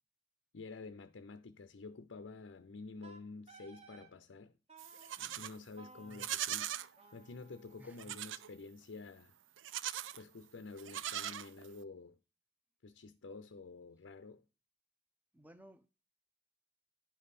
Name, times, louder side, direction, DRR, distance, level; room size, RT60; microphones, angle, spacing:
voice 1, 0.5-4.6 5.3-6.7 7.1-9.4 10.1-12.2 12.8-14.4, left 3 dB, 85° left, 0.6 m, -49 dB
Wind instrument woodwind instrument, 3.0-4.1 4.7-5.1 5.8-8.8, right 3 dB, 35° right, 1.2 m, -60 dB
Livestock farm animals working animals, 4.8-5.6 6.1-6.9 8.0-8.5 9.6-10.2 10.8-11.8, right 12 dB, 90° right, 0.5 m, -40 dB
voice 2, 7.8-8.1 15.3-15.9, right 1 dB, 10° right, 0.6 m, -58 dB
10.5 x 5.4 x 4.2 m
head